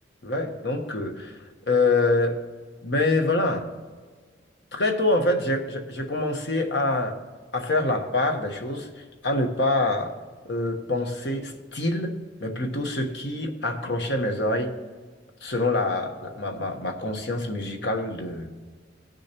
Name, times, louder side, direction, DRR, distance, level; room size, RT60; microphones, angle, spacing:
voice 1, 0.2-1.4 1.7-2.4 2.8-3.7 4.7-7.2 7.5-10.1 10.4-14.8 15.4-18.5, left 2 dB, 65° left, 4 dB, 1.1 m, -26 dB
19.0 x 6.5 x 2.9 m, 1.4 s
head